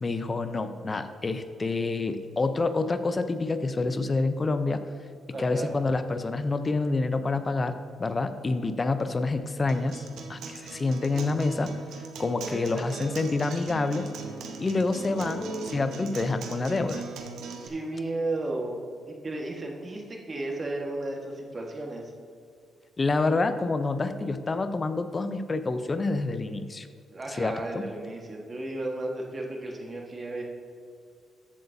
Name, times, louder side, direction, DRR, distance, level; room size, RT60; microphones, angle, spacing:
voice 1, 0.0-4.8 5.4-11.8 12.2-14.1 14.6-15.5 15.7-17.0 23.0-26.9 27.3-27.8, left 3 dB, 25° left, 10 dB, 0.5 m, -27 dB
voice 2, 5.3-5.8 12.7-12.8 14.4-14.5 14.9-15.9 17.6-18.8 19.1-22.1 27.1-30.4, right 2 dB, 30° right, 0 dB, 1.4 m, -34 dB
Acoustic guitar, 9.7-17.7, right 4 dB, 80° right, 0.9 m, -40 dB
14.0 x 8.0 x 2.7 m, 2.3 s
cardioid pair, 125°, 0 cm